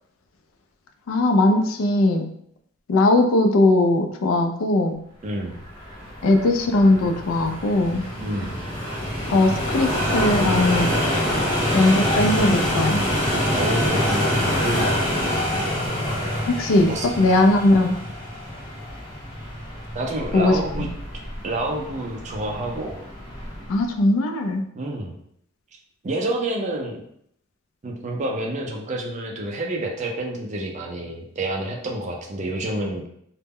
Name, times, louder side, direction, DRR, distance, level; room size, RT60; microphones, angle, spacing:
voice 1, 1.1-2.2 2.9-4.9 6.2-8.0 9.3-10.9 11.7-13.0 16.5-16.9 17.2-17.9 20.3-20.5 23.7-24.6, left 2 dB, 65° left, 5 dB, 0.3 m, -19 dB
voice 2, 5.2-5.6 8.2-8.6 13.5-15.0 16.9-17.1 19.9-20.9 21.4-23.1 24.7-25.2 26.0-27.0 27.8-33.1, right 1 dB, 35° right, 1 dB, 0.4 m, -28 dB
sound 1, 5.5-23.8, equal, 25° left, 0.6 m, -26 dB
2.1 x 2.0 x 3.5 m, 0.70 s
head